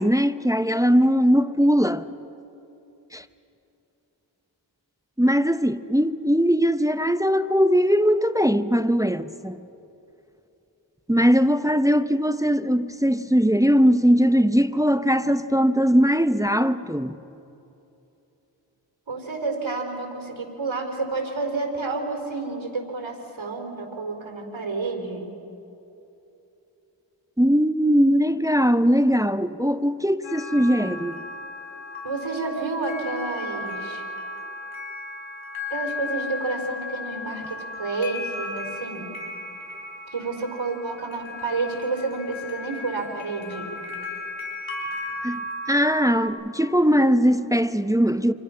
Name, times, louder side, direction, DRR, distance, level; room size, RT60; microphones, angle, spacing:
voice 1, 0.0-2.0 3.1-3.2 5.2-9.6 11.1-17.2 27.4-31.2 45.2-48.3, equal, 5° right, 0.8 m, -20 dB
voice 2, 19.1-25.3 32.0-34.0 35.7-39.1 40.1-43.7, right 3 dB, 75° right, 4.5 m, -30 dB
sound 1, 30.2-46.3, left 2 dB, 80° left, 4.5 m, -35 dB
29.0 x 26.5 x 5.9 m
cardioid pair, 40°, 47 cm